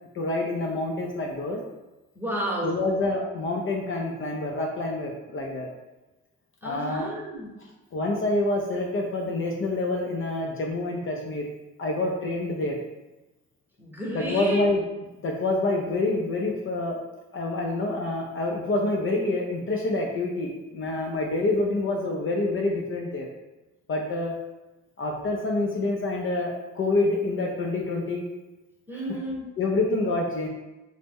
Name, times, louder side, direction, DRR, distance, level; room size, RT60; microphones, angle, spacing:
voice 1, 0.1-1.6 2.6-5.7 6.6-7.1 7.9-11.4 11.8-12.8 14.1-14.8 15.2-17.0 17.3-23.3 23.9-24.3 25.0-28.2 28.9-29.2 29.6-30.5, left 2 dB, 45° left, 0 dB, 0.4 m, -27 dB
voice 2, 2.1-2.8 6.6-7.5 13.8-14.6 28.9-29.5, right 1 dB, 5° right, -4 dB, 0.9 m, -31 dB
3.0 x 2.1 x 3.4 m, 1.1 s
cardioid pair, 90°, 30 cm